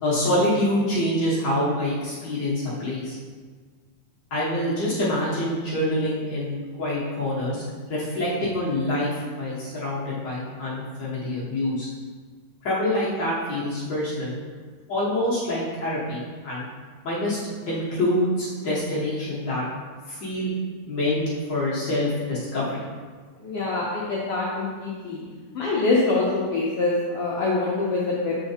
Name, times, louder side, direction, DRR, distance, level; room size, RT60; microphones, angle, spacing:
voice 1, 0.0-3.2 4.3-7.6 7.9-11.9 12.6-14.3 14.9-16.6 17.0-17.4 17.7-19.6 20.1-20.5 20.9-22.8, left 1 dB, 55° left, -8 dB, 1.2 m, -26 dB
voice 2, 23.4-25.2 25.5-28.4, left 3 dB, 80° left, -5 dB, 1.3 m, -24 dB
8.0 x 4.4 x 2.7 m, 1.5 s
omnidirectional pair, 3.5 m